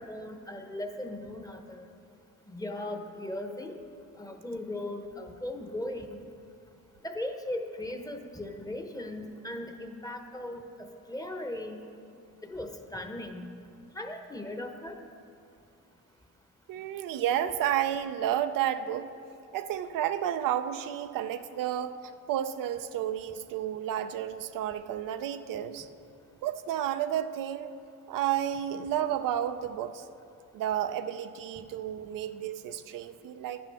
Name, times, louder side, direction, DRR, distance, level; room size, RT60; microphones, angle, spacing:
voice 1, 0.0-1.9 2.5-3.8 4.2-6.2 7.0-11.8 12.4-13.5 13.9-15.0, left 1 dB, 10° left, 5 dB, 0.9 m, -38 dB
voice 2, 16.7-19.1 19.5-25.9 26.4-27.7 28.1-30.1 30.5-33.6, right 10 dB, 75° right, 9 dB, 0.5 m, -31 dB
10.5 x 10.0 x 3.5 m, 2.5 s
supercardioid pair, 65°, 33 cm